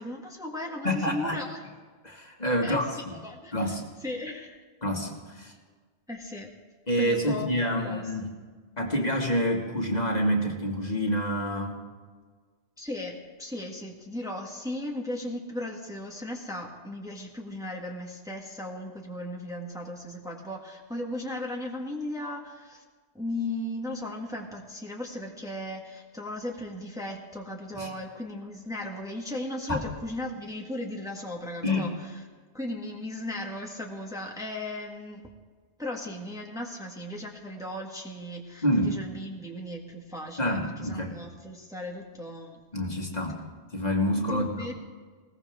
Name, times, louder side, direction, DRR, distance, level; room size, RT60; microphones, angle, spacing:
voice 1, 0.0-1.6 2.6-4.6 6.1-6.5 7.0-8.3 12.8-22.8 23.1-32.2 32.5-35.3 35.8-42.6 44.3-44.7, left 1 dB, 5° right, -1 dB, 1.8 m, -36 dB
voice 2, 0.8-1.4 2.0-3.2 3.5-3.8 4.8-5.5 6.9-8.3 8.8-11.8 27.7-27.9 29.7-29.8 31.6-31.9 38.6-39.0 40.4-41.1 42.7-43.4 43.7-44.7, equal, 40° left, 0 dB, 2.2 m, -27 dB
Knock, 29.7-30.6, right 2 dB, 20° right, 1.8 m, -41 dB
21.0 x 17.5 x 3.7 m, 1.5 s
omnidirectional pair, 1.1 m